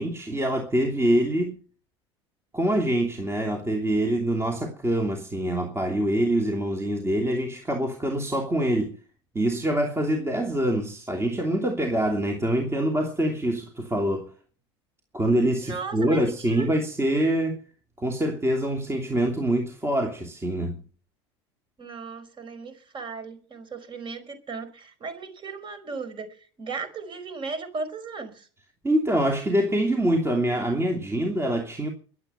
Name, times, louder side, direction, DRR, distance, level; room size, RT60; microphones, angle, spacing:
voice 1, 0.0-1.6 2.5-9.0 9.3-14.3 15.1-17.6 18.0-20.8 28.8-31.9, right 1 dB, 15° right, 2.9 m, -25 dB
voice 2, 15.6-16.7 21.8-26.3 26.6-28.5, right 4 dB, 35° right, 4.8 m, -36 dB
23.0 x 8.7 x 5.6 m
hypercardioid pair, 80°, 15 cm